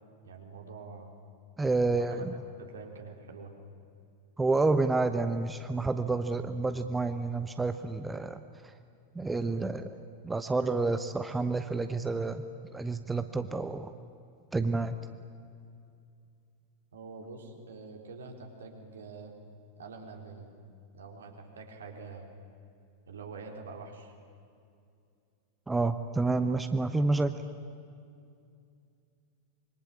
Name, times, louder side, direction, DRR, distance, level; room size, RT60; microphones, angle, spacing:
voice 1, 0.2-1.1 1.8-2.2 2.5-3.5 16.9-19.3 19.8-20.5 20.9-22.3 23.1-24.1, right 4 dB, 65° right, 2 dB, 3.9 m, -45 dB
voice 2, 1.6-2.3 4.4-8.7 9.1-9.9 10.2-12.4 12.7-13.9 14.5-15.0 25.7-27.3, right 3 dB, 10° right, 9 dB, 1.0 m, -29 dB
26.0 x 23.5 x 8.6 m, 2.4 s
figure-of-eight pair, 90°, 0 cm